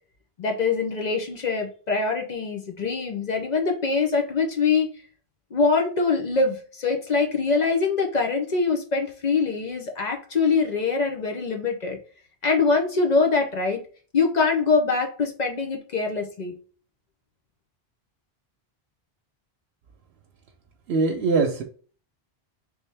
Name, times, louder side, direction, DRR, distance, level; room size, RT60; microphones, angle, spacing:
voice 1, 0.4-4.9 5.5-12.0 12.4-13.8 14.1-16.6, left 4 dB, 50° left, 3 dB, 0.6 m, -23 dB
voice 2, 20.9-21.6, right 4 dB, 80° right, 2 dB, 0.9 m, -22 dB
3.5 x 2.7 x 3.2 m, 0.40 s
omnidirectional pair, 1.1 m